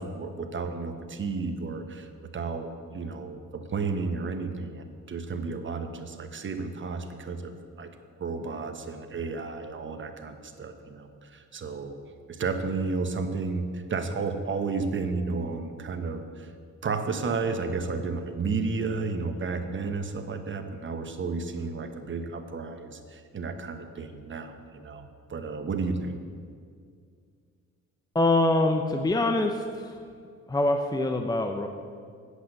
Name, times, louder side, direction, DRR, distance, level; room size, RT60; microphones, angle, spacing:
voice 1, 0.0-7.9 8.2-12.0 12.3-16.5 16.8-26.2, right 4 dB, 40° right, 8 dB, 1.1 m, -32 dB
voice 2, 28.1-30.0 30.5-31.7, left 2 dB, 15° left, 5 dB, 0.6 m, -24 dB
8.3 x 8.1 x 7.6 m, 2.2 s
cardioid pair, 90°, 30 cm